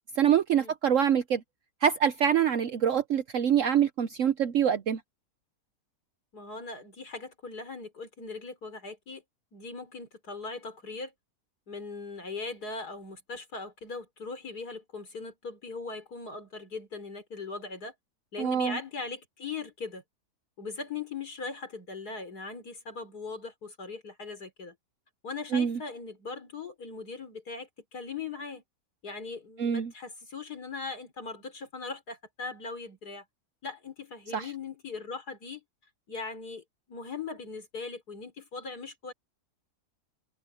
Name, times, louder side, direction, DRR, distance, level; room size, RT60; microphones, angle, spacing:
voice 1, 0.2-1.4 1.8-5.0 18.4-18.8 25.5-25.8 29.6-29.9 34.3-34.4, right 8 dB, 60° right, 1.0 m, -25 dB
voice 2, 6.3-9.2 9.5-11.1 11.7-17.9 18.3-20.0 20.6-24.7 25.2-28.6 29.0-33.2 33.6-35.6 36.1-39.1, left 4 dB, 75° left, 4.5 m, -39 dB
omnidirectional pair, 1.7 m